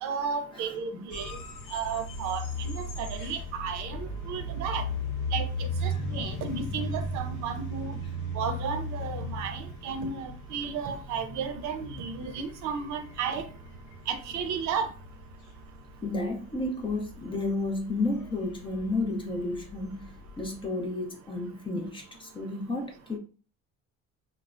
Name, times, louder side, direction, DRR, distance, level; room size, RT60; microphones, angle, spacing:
voice 1, 0.0-1.4 1.7-4.8 5.3-7.9 8.3-13.5 14.1-14.9, right 6 dB, 75° right, 7 dB, 0.5 m, -33 dB
sound 1, 1.1-20.7, left 1 dB, 85° left, 0.6 m, -37 dB
voice 2, 16.0-20.1 20.4-23.2, left 2 dB, 20° left, 2 dB, 0.4 m, -32 dB
3.2 x 2.0 x 2.4 m, 0.38 s
cardioid pair, 160°, 29 cm